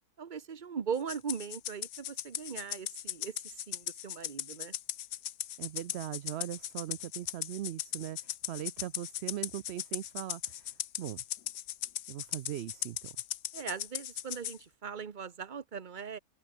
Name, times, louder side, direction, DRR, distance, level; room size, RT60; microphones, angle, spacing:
voice 1, 0.2-4.7 13.5-16.2, right 6 dB, 35° right, 1.0 m, -39 dB
Rattle (instrument), 1.1-14.6, left 12 dB, 75° left, 1.3 m, -38 dB
voice 2, 5.6-11.2 12.1-13.1, right 12 dB, 80° right, 0.5 m, -40 dB
open air
omnidirectional pair, 1.7 m